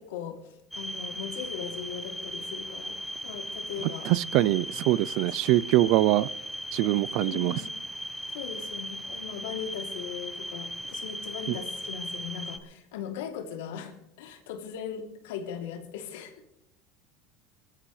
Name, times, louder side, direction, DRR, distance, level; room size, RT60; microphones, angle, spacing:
voice 1, 0.0-4.5 7.2-7.7 8.3-16.3, left 8 dB, 85° left, 3.0 m, -39 dB
sound 1, 0.7-12.6, equal, ahead, 1.4 m, -37 dB
voice 2, 4.1-6.3 6.7-7.5, right 17 dB, 65° right, 0.5 m, -23 dB
22.0 x 13.5 x 3.3 m
supercardioid pair, 120°, 0 cm